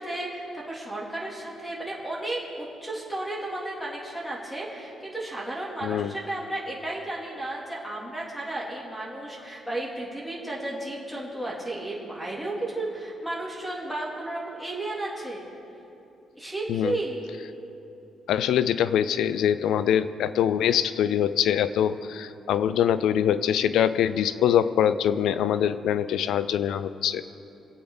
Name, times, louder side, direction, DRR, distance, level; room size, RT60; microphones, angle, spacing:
voice 1, 0.0-15.4 16.4-17.2, right 2 dB, 5° left, -4 dB, 3.1 m, -33 dB
voice 2, 5.8-6.1 16.7-17.0 18.3-27.2, left 9 dB, 80° left, 14 dB, 0.5 m, -24 dB
24.5 x 8.4 x 4.0 m, 2.8 s
cardioid pair, 90°, 0 cm